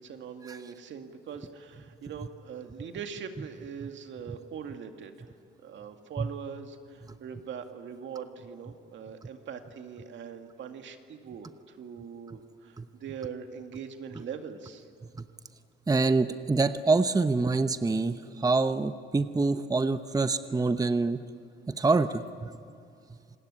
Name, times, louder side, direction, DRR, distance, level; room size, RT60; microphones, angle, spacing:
voice 1, 0.0-14.8, right 7 dB, 70° right, 5 dB, 2.2 m, -42 dB
voice 2, 15.9-21.2 21.8-22.5, right 3 dB, 20° right, 10 dB, 0.9 m, -26 dB
27.5 x 19.5 x 9.9 m, 2.3 s
cardioid pair, 90°, 20 cm